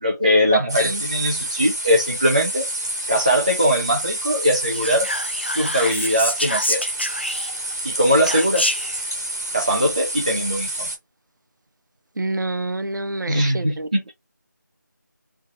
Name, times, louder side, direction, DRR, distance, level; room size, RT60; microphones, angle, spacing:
voice 1, 0.0-2.7 3.1-5.1 5.5-6.8 7.8-8.7 9.5-10.9 13.3-14.0, equal, 25° right, 0.7 m, -20 dB
voice 2, 0.5-1.0 12.2-13.9, right 2 dB, 75° right, 0.5 m, -27 dB
sound 1, 0.7-11.0, right 1 dB, 55° right, 1.4 m, -29 dB
Whispering, 4.7-7.7 8.3-9.0, left 1 dB, 35° left, 0.3 m, -27 dB
3.3 x 2.7 x 2.6 m
figure-of-eight pair, 175°, 10 cm